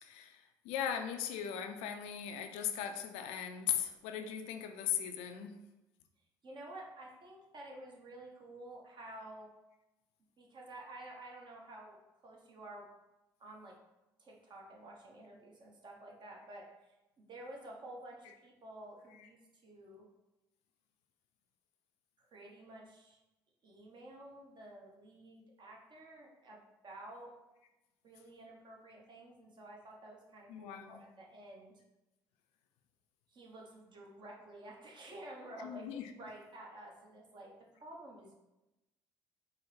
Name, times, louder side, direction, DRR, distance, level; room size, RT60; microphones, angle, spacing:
voice 1, 0.0-5.5 19.1-19.3 30.5-31.0 35.6-36.1, left 9 dB, 65° left, 6 dB, 0.4 m, -38 dB
voice 2, 6.4-9.5 10.4-12.0 12.2-12.9 13.4-13.7 14.2-16.7 17.2-19.4 19.6-20.0 22.2-23.2 23.6-27.3 28.0-31.7 33.3-37.5 37.8-38.3, right 1 dB, 40° right, -1 dB, 1.0 m, -51 dB
4.5 x 2.1 x 3.2 m, 0.98 s
figure-of-eight pair, 50°, 12 cm